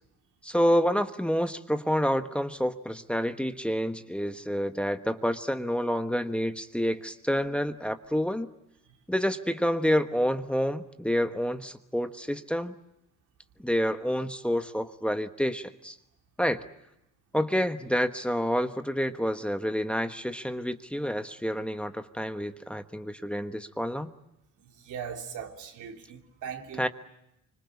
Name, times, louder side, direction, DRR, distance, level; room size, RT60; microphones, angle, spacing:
voice 1, 0.4-8.5 9.1-12.7 13.6-16.0 16.4-16.6 17.3-24.1 26.7-26.9, equal, 5° left, 1.2 m, -28 dB
voice 2, 24.8-26.9, right 7 dB, 80° right, 3.3 m, -39 dB
25.5 x 25.5 x 8.3 m
cardioid pair, 90°, 30 cm